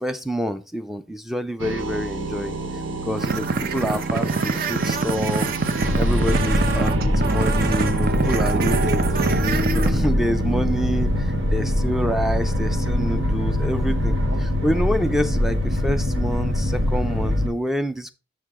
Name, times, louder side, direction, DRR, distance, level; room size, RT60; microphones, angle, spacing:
voice 1, 0.0-2.6 3.0-5.5 6.0-9.0 9.6-18.1, equal, ahead, 10 dB, 0.4 m, -27 dB
sound 1, 1.6-15.7, right 3 dB, 85° right, 0.9 m, -30 dB
sound 2, 3.2-9.9, right 4 dB, 50° right, 0.7 m, -25 dB
sound 3, 5.8-17.5, left 1 dB, 70° right, 1.4 m, -23 dB
6.6 x 6.5 x 3.6 m, 0.31 s
head